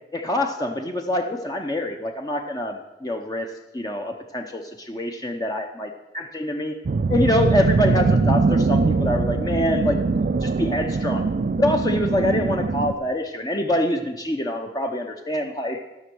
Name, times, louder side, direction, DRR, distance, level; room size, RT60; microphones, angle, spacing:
voice 1, 0.1-5.9 6.1-6.7 7.1-11.3 11.6-15.8, left 1 dB, 20° left, 3 dB, 0.7 m, -25 dB
sound 1, 6.8-12.9, right 4 dB, 50° right, 0.4 m, -22 dB
13.0 x 6.2 x 6.1 m, 1.0 s
head